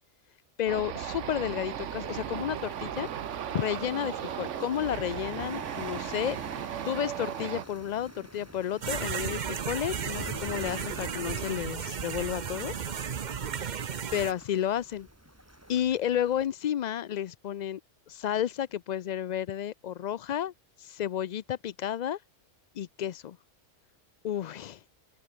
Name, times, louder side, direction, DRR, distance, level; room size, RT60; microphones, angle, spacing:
voice 1, 0.6-3.1 3.5-6.4 6.9-12.7 14.1-15.1 15.7-17.8 18.1-20.5 20.8-22.2 22.7-23.4 24.2-24.8, left 10 dB, 80° left, 0.4 m, -31 dB
sound 1, 0.7-7.7, right 10 dB, 70° right, 1.2 m, -36 dB
sound 2, 1.0-16.5, right 1 dB, 10° right, 4.2 m, -47 dB
sound 3, 8.8-14.3, right 7 dB, 45° right, 0.8 m, -34 dB
open air
omnidirectional pair, 1.3 m